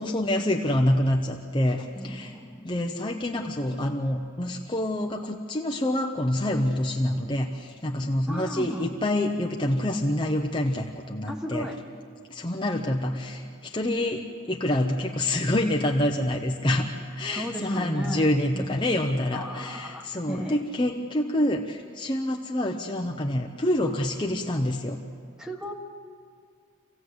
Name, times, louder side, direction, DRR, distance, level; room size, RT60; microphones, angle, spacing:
voice 1, 0.0-2.4 2.6-11.7 12.3-16.9 17.2-25.0, left 1 dB, 25° left, 1 dB, 0.9 m, -27 dB
voice 2, 2.0-2.7 8.3-8.9 11.3-11.8 17.3-18.3 18.5-18.6 19.3-20.6 25.4-25.7, equal, 5° right, 2 dB, 1.5 m, -35 dB
26.5 x 16.0 x 8.0 m, 2.2 s
head